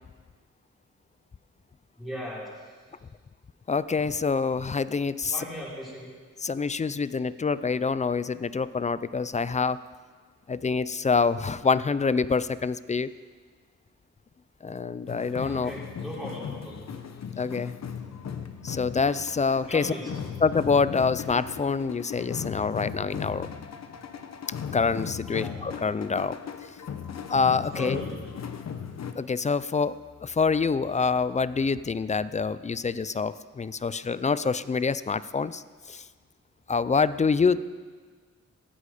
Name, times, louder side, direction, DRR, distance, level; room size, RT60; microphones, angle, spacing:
voice 1, 2.0-2.5 5.3-6.1 15.4-16.9 19.7-20.1 25.3-25.8 27.7-28.3, left 1 dB, ahead, -8 dB, 5.3 m, -38 dB
voice 2, 3.7-5.4 6.4-9.8 10.5-13.1 14.6-15.7 17.4-17.7 18.6-19.9 20.4-23.5 24.7-26.4 27.3-28.0 29.2-35.6 35.9-36.0 36.7-37.6, left 5 dB, 25° left, 16 dB, 0.3 m, -26 dB
sound 1, 15.1-29.1, left 7 dB, 60° left, 1.0 m, -37 dB
16.5 x 15.0 x 5.0 m, 1.5 s
wide cardioid pair, 160°, 30 cm